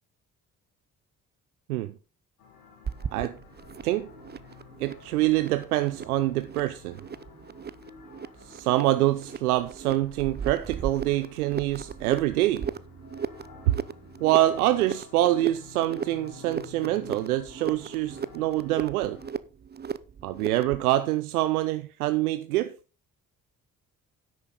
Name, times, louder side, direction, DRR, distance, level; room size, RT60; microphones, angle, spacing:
sound 1, 2.4-19.3, left 6 dB, 80° left, 2.1 m, -51 dB
sound 2, 2.8-20.9, right 7 dB, 25° right, 0.7 m, -37 dB
voice 1, 4.8-7.0 8.4-12.7 13.7-13.8 14.2-19.2 20.2-22.7, right 15 dB, 80° right, 0.6 m, -25 dB
10.5 x 8.4 x 3.9 m
figure-of-eight pair, 40°, 44 cm